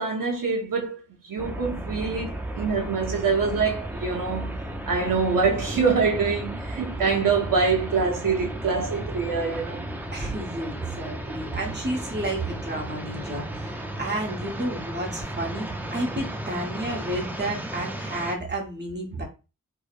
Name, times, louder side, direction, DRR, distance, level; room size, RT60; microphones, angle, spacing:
voice 1, 0.0-4.6 4.9-9.8 19.1-19.2, right 5 dB, 75° right, 0.7 m, -25 dB
sound 1, 1.4-18.4, right 1 dB, 5° right, 0.4 m, -34 dB
voice 2, 10.1-19.2, right 1 dB, 30° right, 1.1 m, -31 dB
4.7 x 2.1 x 2.4 m
wide cardioid pair, 110°, 33 cm